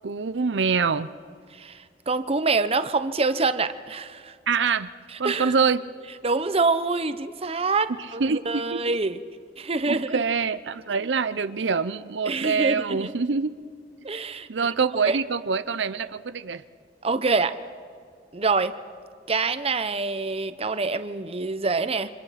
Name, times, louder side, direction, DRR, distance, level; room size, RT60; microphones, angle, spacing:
voice 1, 0.0-1.1 4.5-4.9 5.2-5.8 8.2-9.0 9.9-13.5 14.5-16.6, right 5 dB, 90° right, 13 dB, 0.7 m, -25 dB
voice 2, 1.5-4.3 5.2-5.5 6.2-9.2 9.6-10.2 12.3-13.1 14.0-14.7 15.0-15.2 17.0-17.5 18.3-18.7 19.3-22.1, right 3 dB, 35° right, 11 dB, 0.9 m, -26 dB
29.5 x 25.0 x 5.9 m, 2.1 s
head